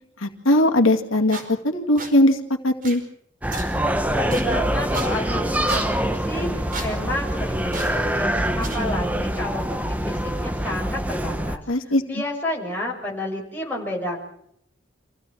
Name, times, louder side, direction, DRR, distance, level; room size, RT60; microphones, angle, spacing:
voice 1, 0.2-3.0 11.7-12.0, left 1 dB, 90° left, 3 dB, 2.2 m, -20 dB
sound 1, 1.3-1.4 2.0-2.1 2.8-3.0 3.5-3.6 4.3-4.4 4.9-5.1 5.7-5.8 6.7-6.9 7.7-7.9 8.6-8.8, right 3 dB, 40° right, 5.0 m, -32 dB
sound 2, 3.4-11.6, equal, 5° right, 1.1 m, -25 dB
voice 2, 4.2-14.3, left 1 dB, 10° left, -2 dB, 6.2 m, -31 dB
27.0 x 16.0 x 7.5 m, 0.72 s
head